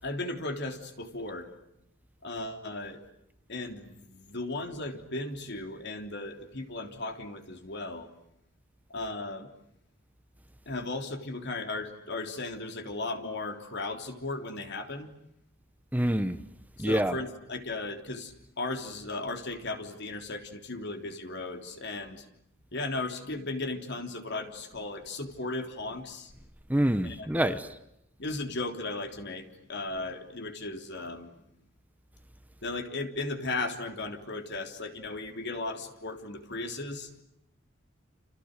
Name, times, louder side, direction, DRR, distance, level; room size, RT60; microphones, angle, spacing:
voice 1, 0.0-1.5 2.2-3.0 3.5-8.1 8.9-9.5 10.7-15.1 16.8-22.3 22.7-26.3 27.0-27.6 28.2-31.4 32.6-37.1, left 2 dB, 60° left, 3.5 m, -36 dB
voice 2, 15.9-16.4 16.8-17.2 26.7-27.7, right 1 dB, 10° right, 1.0 m, -26 dB
30.0 x 29.0 x 6.6 m
head